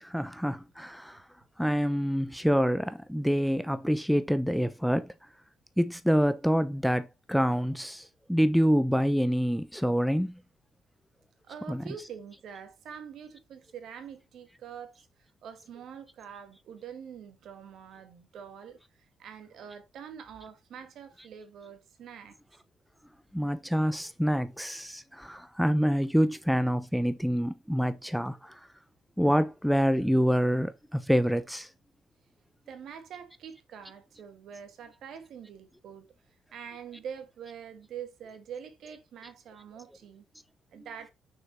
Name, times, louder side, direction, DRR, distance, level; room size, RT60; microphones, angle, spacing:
voice 1, 0.0-1.2 1.6-5.1 5.8-10.3 11.7-11.9 23.3-28.5 29.2-31.7, equal, ahead, 0.8 m, -26 dB
voice 2, 11.4-22.4 32.7-36.1 36.5-40.2 40.7-41.1, right 7 dB, 70° right, 1.9 m, -45 dB
6.5 x 6.0 x 4.4 m
cardioid pair, 90°, 0 cm